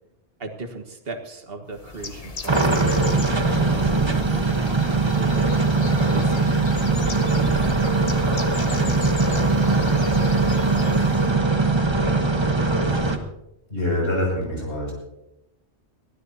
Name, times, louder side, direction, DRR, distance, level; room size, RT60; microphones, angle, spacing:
voice 1, 0.4-3.0 3.6-6.6 7.3-7.9 8.2-10.0 10.6-10.9, right 3 dB, 60° right, 6 dB, 1.7 m, -37 dB
Bird, 1.7-11.4, left 3 dB, 35° left, 0.9 m, -37 dB
sound 1, 2.5-13.2, right 3 dB, 25° right, 1.2 m, -21 dB
voice 2, 13.7-14.9, left 1 dB, 60° left, -2 dB, 6.6 m, -25 dB
22.5 x 16.0 x 2.8 m, 0.88 s
omnidirectional pair, 1.1 m